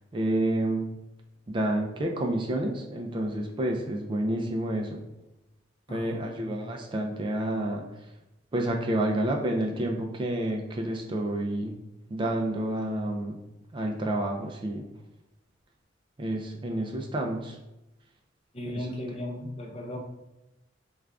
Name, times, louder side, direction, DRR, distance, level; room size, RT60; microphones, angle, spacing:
voice 1, 0.1-0.9 1.5-5.0 5.9-7.8 8.5-11.7 12.1-13.4 13.7-14.8 16.2-17.6, right 1 dB, 25° right, 2 dB, 0.3 m, -29 dB
voice 2, 5.9-6.6 18.5-20.0, left 1 dB, 30° left, 1 dB, 0.6 m, -37 dB
3.3 x 2.4 x 3.4 m, 0.93 s
head